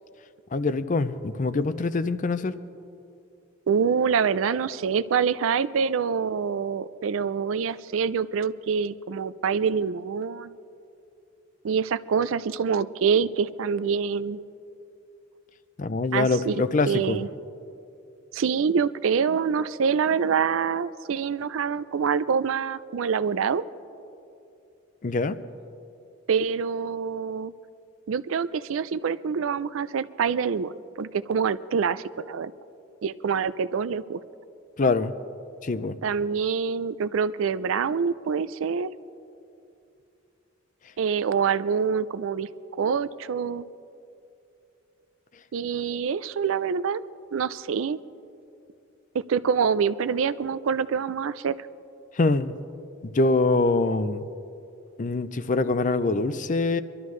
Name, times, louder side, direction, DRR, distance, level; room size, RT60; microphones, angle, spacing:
voice 1, 0.5-2.5 15.8-17.2 25.0-25.4 34.8-35.1 35.6-36.0 52.1-52.5 53.0-54.2 55.0-56.8, left 3 dB, 40° left, 13 dB, 0.5 m, -24 dB
voice 2, 3.7-10.5 11.6-14.4 16.1-17.3 18.3-23.6 26.3-27.5 28.1-32.5 33.0-34.2 36.0-38.9 41.0-42.5 42.8-43.7 45.5-47.0 47.3-48.0 49.1-51.6, right 6 dB, 80° right, 16 dB, 0.4 m, -26 dB
24.0 x 12.5 x 3.2 m, 2.7 s
head